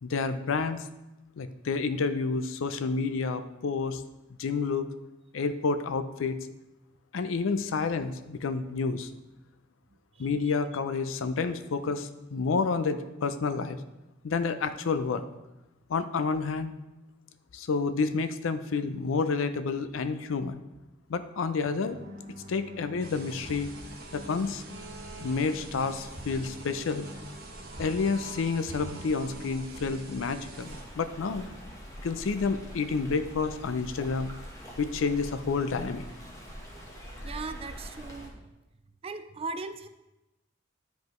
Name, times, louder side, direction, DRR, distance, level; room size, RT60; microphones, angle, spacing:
voice 1, 0.0-0.8 1.4-4.0 4.4-4.9 5.3-6.4 7.1-9.1 10.2-13.8 14.2-15.2 15.9-16.7 17.5-20.6 21.1-22.0 22.5-23.7 24.1-24.6 25.2-27.1 27.8-31.5 32.0-34.3 34.8-36.0, left 4 dB, 75° left, 11 dB, 0.5 m, -29 dB
sound 1, 21.8-30.8, equal, 75° right, 1.1 m, -48 dB
sound 2, 23.0-30.8, right 2 dB, 55° right, 1.2 m, -44 dB
Stream, 30.6-38.3, equal, 15° left, 1.1 m, -44 dB
voice 2, 37.2-38.5 39.0-39.9, right 3 dB, 30° right, 10 dB, 0.4 m, -38 dB
9.3 x 5.1 x 3.1 m, 0.99 s
head